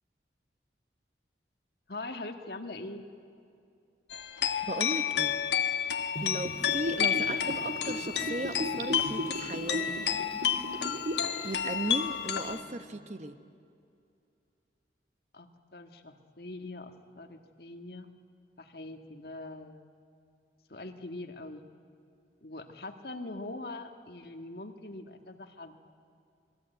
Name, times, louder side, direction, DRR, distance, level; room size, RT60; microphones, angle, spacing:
voice 1, 1.9-3.1 12.5-13.0 15.3-18.1 18.6-19.8 20.7-21.7 22.4-25.8, left 2 dB, 60° left, 6 dB, 1.6 m, -43 dB
sound 1, 4.1-12.6, left 9 dB, 75° left, 1.4 m, -31 dB
voice 2, 4.7-5.3 6.2-9.8 11.4-13.4, right 1 dB, 40° right, 9 dB, 1.0 m, -36 dB
Gurgling / Bathtub (filling or washing), 6.2-11.3 11.6-11.7, right 1 dB, 65° right, 2.7 m, -36 dB
27.5 x 20.5 x 9.1 m, 2.5 s
head